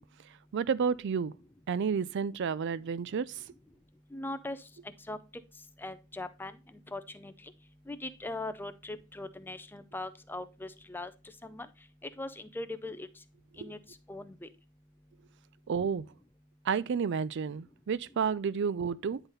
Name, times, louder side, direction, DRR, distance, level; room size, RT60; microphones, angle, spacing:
voice 1, 0.5-1.3 1.7-3.4 13.6-13.7 15.7-16.1 16.7-19.2, right 6 dB, 55° right, 0.4 m, -31 dB
voice 2, 4.1-4.6 5.1-5.2 5.8-6.5 6.9-7.3 7.9-11.1 11.4-11.7 12.2-13.1 13.6-13.8 14.1-14.5, left 2 dB, 10° left, 0.5 m, -40 dB
9.8 x 4.0 x 4.0 m
head